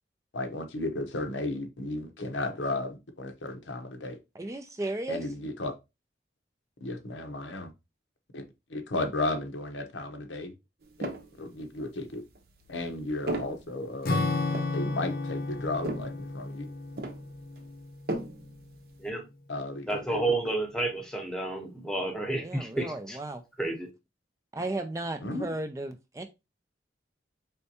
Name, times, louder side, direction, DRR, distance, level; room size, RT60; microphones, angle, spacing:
voice 1, 0.3-4.2 5.1-5.7 6.8-7.7 8.3-8.4 8.7-10.5 11.0-11.1 11.4-12.2 12.7-14.2 14.7-16.7 19.5-20.2 25.2-25.5, left 2 dB, 90° left, 0.8 m, -34 dB
voice 2, 4.4-5.3 22.4-23.4 24.5-26.3, right 2 dB, 15° right, 0.3 m, -35 dB
sound 1, 10.8-11.4 12.0-19.1, right 2 dB, 55° right, 0.7 m, -39 dB
Acoustic guitar / Strum, 14.0-18.8, left 3 dB, 50° left, 0.6 m, -33 dB
voice 3, 19.9-23.2 23.6-23.9, right 2 dB, 5° left, 0.8 m, -31 dB
4.3 x 3.4 x 2.7 m
head